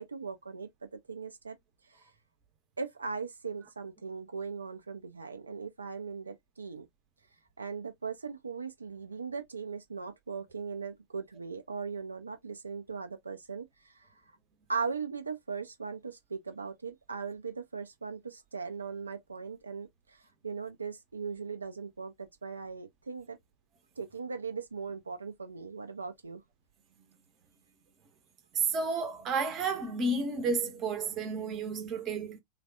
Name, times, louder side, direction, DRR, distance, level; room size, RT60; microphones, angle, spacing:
voice 1, 0.0-1.6 1.9-2.1 2.8-6.9 7.6-14.1 14.7-23.4 24.0-26.4, right 5 dB, 75° right, 0.3 m, -39 dB
voice 2, 28.5-32.4, right 4 dB, 30° right, 0.7 m, -31 dB
3.2 x 2.1 x 2.3 m
figure-of-eight pair, 90°, 0 cm